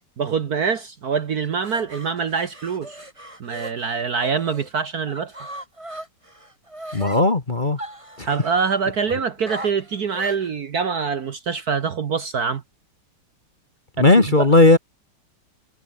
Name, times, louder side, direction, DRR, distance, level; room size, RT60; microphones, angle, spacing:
voice 1, 0.2-3.0 3.4-5.3 8.2-12.6 14.0-14.5, right 6 dB, 50° right, 1.4 m, -25 dB
sound 1, 1.4-4.7 5.1-7.2 7.8-8.8 9.5-10.5, right 1 dB, 15° right, 4.6 m, -38 dB
voice 2, 6.9-7.8 8.2-8.3 14.0-14.8, left 2 dB, 25° left, 1.4 m, -16 dB
omnidirectional pair, 2.4 m